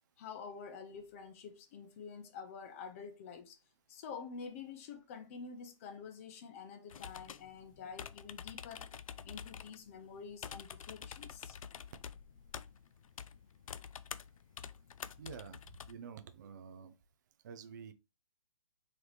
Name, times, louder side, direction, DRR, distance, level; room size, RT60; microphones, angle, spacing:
voice 1, 0.2-3.6 3.9-8.9 9.2-11.6, left 6 dB, 25° left, 0.6 m, -48 dB
sound 1, 6.9-15.9, left 7 dB, 80° left, 0.4 m, -48 dB
voice 2, 15.2-15.6 15.9-17.0 17.4-17.9, right 6 dB, 35° right, 0.4 m, -48 dB
4.0 x 3.2 x 3.1 m
hypercardioid pair, 160°, 17 cm